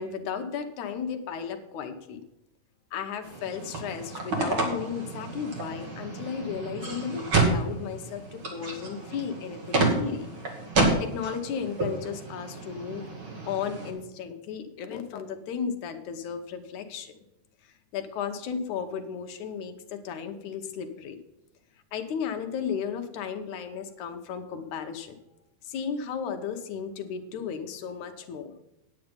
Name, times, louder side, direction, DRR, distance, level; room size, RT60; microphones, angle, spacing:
voice 1, 0.0-2.2 2.9-10.3 11.0-13.1 13.5-17.1 17.9-21.2 21.9-25.2 25.6-28.5, left 7 dB, 75° left, 6 dB, 2.3 m, -34 dB
sound 1, 3.2-13.9, right 2 dB, 45° right, 2.8 m, -30 dB
9.6 x 9.3 x 5.2 m, 0.89 s
omnidirectional pair, 3.5 m